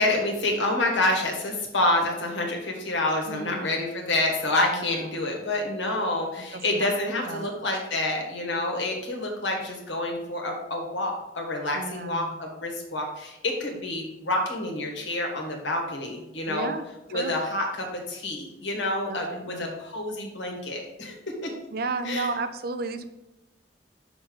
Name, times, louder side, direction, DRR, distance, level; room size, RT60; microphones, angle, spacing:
voice 1, 0.0-16.7 17.1-21.2 22.0-22.3, left 2 dB, 85° left, 1 dB, 1.5 m, -28 dB
voice 2, 3.3-3.9 4.7-5.3 6.5-6.9 7.2-7.5 11.7-12.4 16.5-16.8 17.1-17.3 19.1-19.8 21.7-23.0, right 3 dB, 55° right, 9 dB, 0.5 m, -33 dB
5.9 x 5.3 x 3.9 m, 0.92 s
head